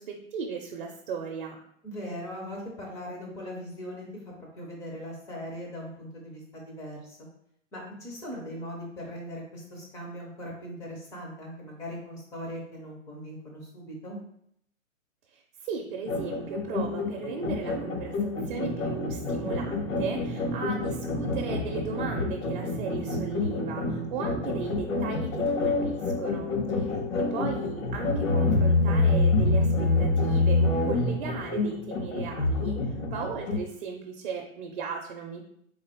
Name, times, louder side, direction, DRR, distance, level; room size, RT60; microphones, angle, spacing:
voice 1, 0.0-1.6 15.3-26.5 27.2-35.4, right 5 dB, 40° right, 1 dB, 0.6 m, -36 dB
voice 2, 1.8-7.2 7.7-14.2 26.9-27.3, equal, 10° left, -1 dB, 0.4 m, -40 dB
sound 1, 16.1-33.6, left 2 dB, 70° left, 1.1 m, -27 dB
3.8 x 3.7 x 3.4 m, 0.72 s
hypercardioid pair, 130°, 40 cm